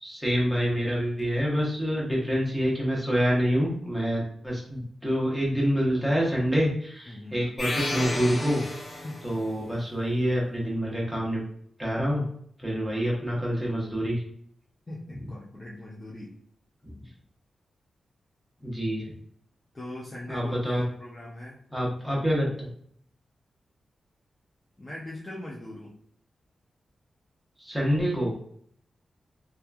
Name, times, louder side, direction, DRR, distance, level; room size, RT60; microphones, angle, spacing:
voice 1, 0.0-8.6 8.9-11.4 11.8-12.2 12.6-14.2 18.6-19.1 20.3-20.8 21.7-22.7 27.6-28.3, equal, ahead, -5 dB, 0.9 m, -27 dB
voice 2, 7.1-7.5 9.0-9.3 14.9-16.4 19.7-21.6 24.8-25.9, left 1 dB, 25° left, -5 dB, 0.4 m, -40 dB
sound 1, 7.6-9.5, left 1 dB, 70° left, 0.9 m, -32 dB
2.9 x 2.3 x 2.2 m, 0.64 s
wide cardioid pair, 140°, 0 cm